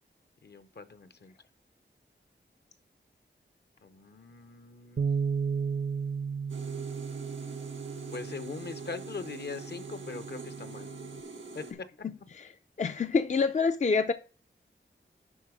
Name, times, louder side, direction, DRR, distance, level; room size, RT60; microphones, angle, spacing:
voice 1, 0.4-1.3 3.8-5.1 8.1-10.9 11.5-11.9, left 4 dB, 60° left, 0.8 m, -41 dB
Bass guitar, 5.0-11.2, right 6 dB, 55° right, 0.5 m, -35 dB
sound 1, 6.5-11.7, right 4 dB, 85° right, 1.5 m, -43 dB
voice 2, 12.8-14.1, left 4 dB, 40° left, 0.4 m, -26 dB
11.0 x 4.1 x 4.9 m
wide cardioid pair, 80°, 20 cm